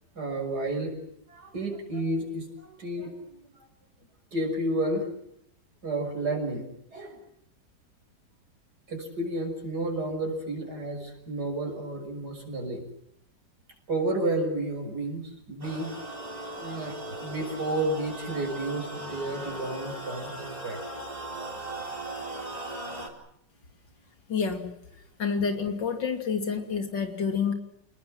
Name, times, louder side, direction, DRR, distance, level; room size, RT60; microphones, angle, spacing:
voice 1, 0.1-1.0 1.3-3.4 4.3-5.1 5.8-6.7 6.9-7.2 8.9-12.8 13.9-15.9 16.6-20.8, right 2 dB, 60° right, 4 dB, 6.7 m, -31 dB
sound 1, 15.6-23.1, right 1 dB, 20° right, 4.4 m, -38 dB
voice 2, 24.3-24.7 25.2-27.5, left 6 dB, 85° left, 5 dB, 3.5 m, -28 dB
28.5 x 19.5 x 7.7 m, 0.75 s
omnidirectional pair, 1.9 m